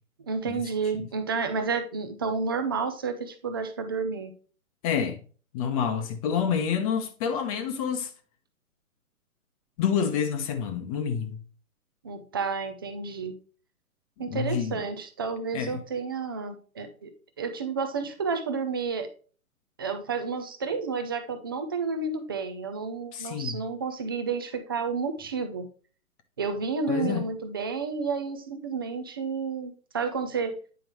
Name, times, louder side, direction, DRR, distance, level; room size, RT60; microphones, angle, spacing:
voice 1, 0.3-4.3 12.0-13.3 14.2-17.1 17.4-19.1 19.8-25.7 26.4-30.5, right 5 dB, 15° right, 0.4 m, -31 dB
voice 2, 4.8-5.2 5.5-8.1 9.8-11.4 14.3-14.8 15.5-15.8 23.1-23.6 26.9-27.3, left 7 dB, 25° left, 0.8 m, -28 dB
9.2 x 4.9 x 3.1 m
hypercardioid pair, 135°, 43 cm